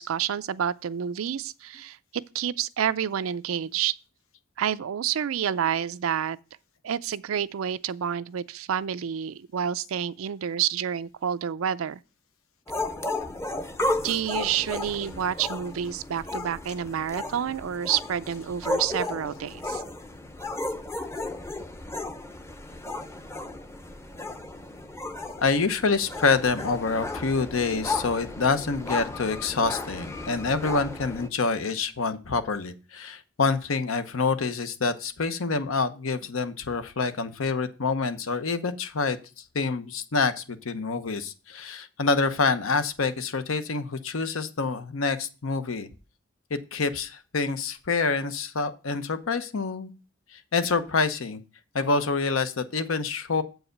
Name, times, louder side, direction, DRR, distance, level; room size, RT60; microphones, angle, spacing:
voice 1, 0.0-3.9 4.6-6.4 6.8-12.0 14.0-19.8, right 9 dB, 85° right, 0.4 m, -29 dB
sound 1, 12.7-31.3, left 2 dB, 15° left, 0.6 m, -34 dB
voice 2, 25.4-45.9 46.5-49.9 50.3-51.4 51.7-53.4, left 4 dB, 80° left, 0.8 m, -27 dB
7.8 x 4.8 x 6.4 m
head